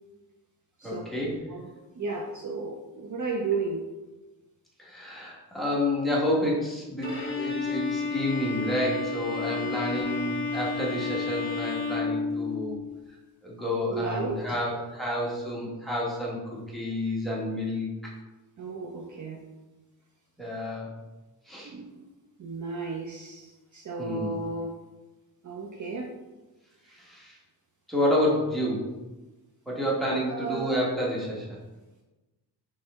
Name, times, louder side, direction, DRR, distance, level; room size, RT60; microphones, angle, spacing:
voice 1, 0.8-1.5 4.8-12.8 13.1-13.2 13.4-18.1 20.4-20.9 21.5-21.7 24.0-24.4 26.9-27.4 27.9-28.9 29.7-31.6, left 1 dB, ahead, -5 dB, 1.1 m, -29 dB
voice 2, 1.5-3.8 9.6-9.7 13.9-14.6 18.6-19.4 21.6-21.9 22.4-24.8 25.4-26.1 30.1-30.8, right 4 dB, 45° right, 1 dB, 0.5 m, -34 dB
Bowed string instrument, 7.0-12.9, left 4 dB, 30° left, 1.0 m, -31 dB
4.3 x 3.2 x 3.5 m, 1.1 s
wide cardioid pair, 130°, 42 cm